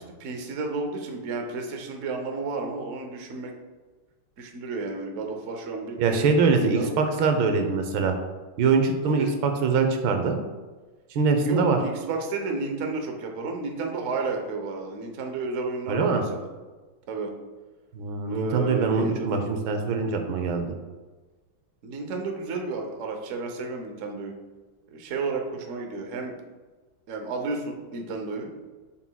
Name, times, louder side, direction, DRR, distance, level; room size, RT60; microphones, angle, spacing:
voice 1, 0.2-3.5 4.4-6.9 9.0-9.3 11.4-16.5 17.1-17.3 18.3-19.3 21.8-24.3 24.9-26.3 27.1-28.5, right 3 dB, 55° right, 3 dB, 0.9 m, -32 dB
voice 2, 6.0-8.1 8.6-10.4 11.1-11.8 15.9-16.2 17.9-20.7, right 4 dB, 90° right, 5 dB, 1.6 m, -23 dB
7.2 x 5.9 x 2.3 m, 1.3 s
omnidirectional pair, 2.1 m